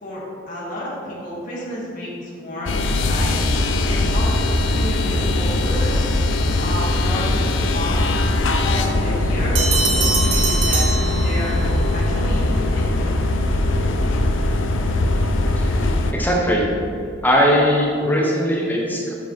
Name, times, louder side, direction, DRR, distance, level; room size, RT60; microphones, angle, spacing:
voice 1, 0.0-3.4 3.8-6.0 6.5-8.2 8.6-11.6 11.9-13.2, left 1 dB, 45° left, -7 dB, 1.6 m, -31 dB
sound 1, 2.7-16.1, left 2 dB, 85° left, 0.6 m, -20 dB
Bell, 9.5-11.8, right 4 dB, 85° right, 1.1 m, -23 dB
voice 2, 16.1-16.7 17.2-19.1, equal, 10° left, -3 dB, 1.0 m, -19 dB
7.3 x 5.0 x 4.7 m, 2.5 s
head